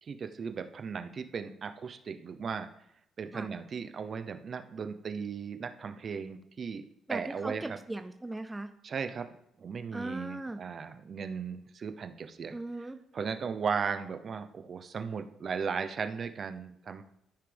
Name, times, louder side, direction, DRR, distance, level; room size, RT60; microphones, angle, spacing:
voice 1, 0.0-2.7 3.2-7.8 8.8-9.3 9.6-12.6 13.1-17.0, right 6 dB, 50° right, 8 dB, 0.7 m, -36 dB
voice 2, 7.1-8.7 9.9-10.6 12.5-13.0, right 2 dB, 15° right, 8 dB, 0.5 m, -38 dB
13.0 x 5.7 x 3.5 m, 0.75 s
cardioid pair, 90°, 0 cm